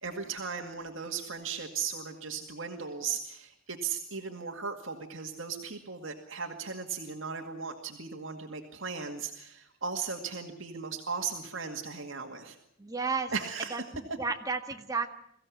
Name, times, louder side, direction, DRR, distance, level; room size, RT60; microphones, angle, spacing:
voice 1, 0.0-12.6 13.3-13.8, right 5 dB, 75° right, 3 dB, 2.1 m, -37 dB
voice 2, 12.8-13.3 13.7-15.1, right 4 dB, 20° right, 4 dB, 1.8 m, -33 dB
23.0 x 16.0 x 9.7 m, 0.72 s
head